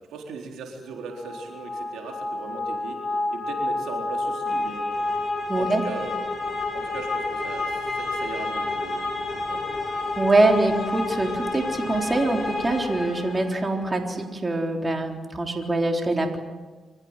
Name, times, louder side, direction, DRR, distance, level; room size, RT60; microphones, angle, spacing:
voice 1, 0.1-3.0 3.3-5.0 5.6-6.2 6.7-9.6, right 4 dB, 90° right, 1 dB, 4.1 m, -38 dB
sound 1, 1.1-13.9, left 2 dB, 30° left, 6.1 m, -29 dB
voice 2, 5.5-5.8 10.2-16.4, right 2 dB, 30° right, 2 dB, 3.8 m, -24 dB
25.5 x 15.5 x 9.1 m, 1.3 s
cardioid pair, 65°, 0 cm